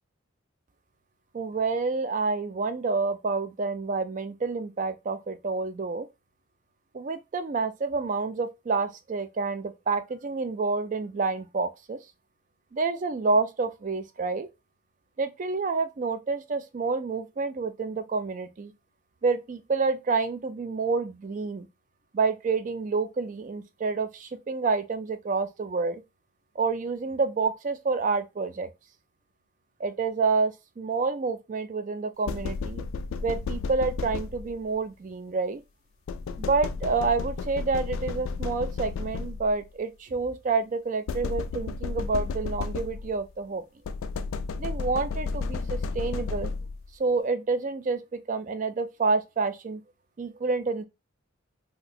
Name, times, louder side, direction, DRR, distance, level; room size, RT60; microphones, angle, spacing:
voice 1, 1.3-6.1 6.9-12.0 12.7-14.5 15.2-18.7 19.2-21.7 22.1-26.0 26.6-28.7 29.8-32.8 33.2-35.6 36.4-43.6 44.6-46.5 47.0-49.8 50.2-50.8, right 4 dB, 40° right, 0.3 m, -28 dB
sound 1, 32.3-34.7 36.1-39.6 41.1-43.3 43.8-46.9, left 4 dB, 75° left, 0.3 m, -33 dB
2.7 x 2.1 x 4.1 m
head